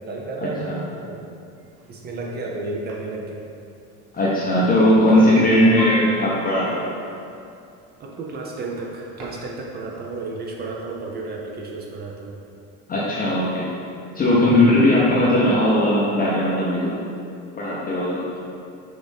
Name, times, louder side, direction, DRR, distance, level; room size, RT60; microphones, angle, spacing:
voice 1, 0.1-1.4 1.9-3.4 5.6-5.7 8.0-12.4 18.3-18.6, right 3 dB, 30° right, -1 dB, 0.4 m, -32 dB
sound 1, 1.8-1.9 2.9-3.0 4.2-4.3 4.8-4.9 5.2-7.2 8.3-8.4 8.8-8.9 9.2-9.6 9.9-10.0 10.2-10.3 10.6-10.7, right 1 dB, 60° right, 1.2 m, -32 dB
voice 2, 4.1-6.8 12.9-13.7 14.1-16.9 17.6-18.2, left 1 dB, 25° left, -7 dB, 0.6 m, -18 dB
6.2 x 2.5 x 3.3 m, 2.5 s
cardioid pair, 130°, 34 cm